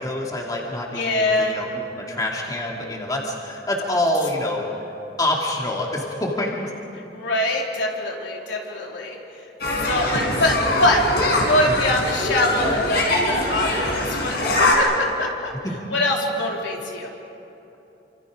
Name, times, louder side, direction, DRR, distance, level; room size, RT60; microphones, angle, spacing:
voice 1, 0.0-4.9 5.2-6.7 10.1-10.5 11.2-11.8, left 1 dB, 20° left, -2 dB, 2.7 m, -27 dB
voice 2, 0.9-1.5 7.1-9.2 9.8-11.0 11.4-15.5 15.9-17.1, left 1 dB, 80° left, -1 dB, 3.6 m, -23 dB
sound 1, 9.6-14.7, left 2 dB, 55° left, 5.2 m, -22 dB
29.0 x 26.5 x 5.1 m, 3.0 s
head